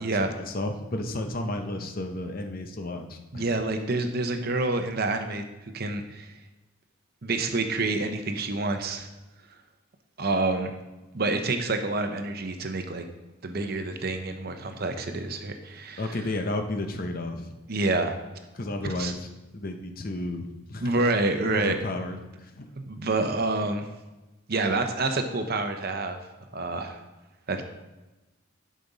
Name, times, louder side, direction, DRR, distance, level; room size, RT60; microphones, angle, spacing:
voice 1, 0.0-3.5 16.0-17.5 18.5-20.9 21.5-22.2 22.6-22.7, left 2 dB, 45° left, 5 dB, 0.8 m, -33 dB
voice 2, 3.3-5.4 5.7-6.3 7.2-9.1 10.2-10.7 11.1-13.0 13.4-16.0 17.7-18.2 19.0-19.1 20.8-21.8 22.9-23.9 24.5-26.2 26.5-27.0 27.5-27.6, right 2 dB, 45° right, 6 dB, 0.7 m, -27 dB
11.0 x 5.2 x 4.0 m, 1.1 s
head